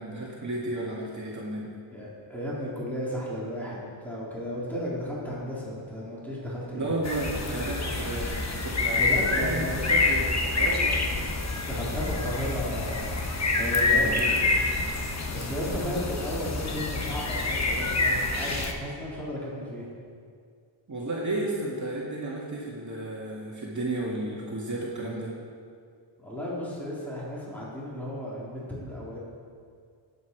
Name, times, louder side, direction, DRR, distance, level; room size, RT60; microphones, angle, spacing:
voice 1, 0.0-1.7 6.7-10.2 10.5-11.0 13.6-14.3 20.9-25.3, right 2 dB, 35° right, -5 dB, 2.1 m, -33 dB
voice 2, 1.9-6.9 9.0-9.8 11.7-14.6 15.3-19.9 26.2-29.2, equal, 5° left, -8 dB, 3.7 m, -34 dB
sound 1, 7.0-18.7, left 3 dB, 35° left, 1.2 m, -27 dB
19.5 x 8.5 x 4.8 m, 2.2 s
wide cardioid pair, 145°, 48 cm